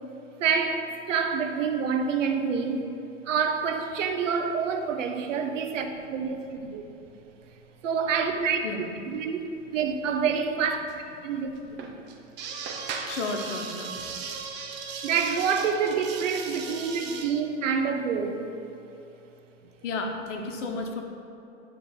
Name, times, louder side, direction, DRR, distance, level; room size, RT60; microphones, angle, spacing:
voice 1, 0.4-2.9 3.3-6.8 7.8-8.6 9.1-9.4 9.7-11.9 14.1-14.2 15.0-18.5, right 6 dB, 90° right, 5 dB, 0.9 m, -27 dB
sound 1, 9.1-9.2 9.5-9.6 10.3-10.4 10.9-11.0 11.6-17.2, right 5 dB, 30° right, 0.7 m, -37 dB
voice 2, 13.0-13.9 19.8-21.0, left 3 dB, 75° left, 3 dB, 1.2 m, -32 dB
10.0 x 3.4 x 5.6 m, 3.0 s
hypercardioid pair, 130°, 37 cm